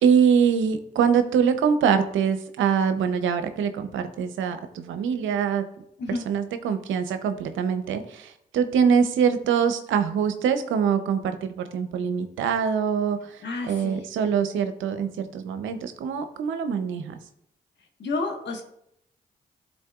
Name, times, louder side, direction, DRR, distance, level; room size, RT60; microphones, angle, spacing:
voice 1, 0.0-5.6 6.3-17.1, right 7 dB, 85° right, 9 dB, 0.6 m, -24 dB
voice 2, 13.4-14.0 18.0-18.6, left 3 dB, 65° left, 3 dB, 1.4 m, -30 dB
12.0 x 4.1 x 2.4 m, 0.74 s
supercardioid pair, 45°, 20 cm